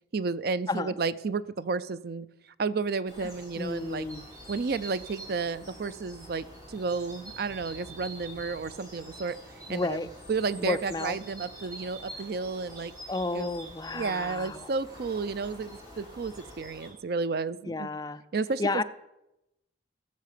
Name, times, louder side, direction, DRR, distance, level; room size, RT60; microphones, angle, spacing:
voice 1, 0.1-2.3 2.6-4.1 4.5-9.4 9.7-10.0 10.3-12.9 13.3-13.5 13.9-17.9 18.3-18.6, right 4 dB, 55° right, 16 dB, 0.4 m, -32 dB
sound 1, 3.1-16.9, right 1 dB, 20° right, 3.4 m, -46 dB
voice 2, 3.2-4.2 9.7-10.1 10.6-11.2 13.1-14.7 17.7-18.2 18.6-18.8, left 3 dB, 20° left, 12 dB, 0.4 m, -32 dB
14.5 x 6.6 x 6.6 m, 0.91 s
head